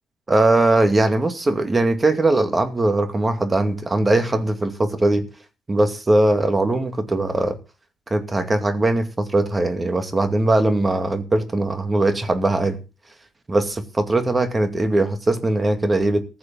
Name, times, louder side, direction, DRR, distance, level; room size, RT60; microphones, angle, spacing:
voice 1, 0.3-5.2 5.7-7.6 8.1-12.8 13.5-16.2, right 2 dB, 25° right, 2.3 m, -20 dB
15.0 x 6.6 x 7.3 m
cardioid pair, 90°, 0 cm